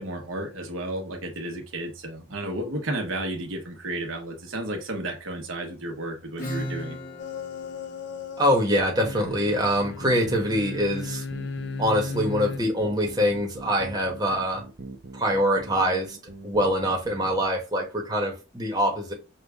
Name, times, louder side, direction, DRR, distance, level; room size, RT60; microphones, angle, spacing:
voice 1, 0.0-7.0, right 1 dB, 90° right, 2 dB, 1.1 m, -32 dB
Acoustic guitar / Strum, 6.4-11.7, equal, 40° left, 1.7 m, -39 dB
sound 1, 7.2-8.6 8.9-12.6, left 4 dB, 60° left, 0.4 m, -35 dB
voice 2, 8.4-11.2 11.8-14.6 15.1-16.2 16.4-19.1, equal, 20° right, 0 dB, 1.0 m, -24 dB
sound 2, 8.8-17.5, right 2 dB, 55° right, 0.7 m, -42 dB
5.5 x 2.4 x 3.4 m, 0.30 s
head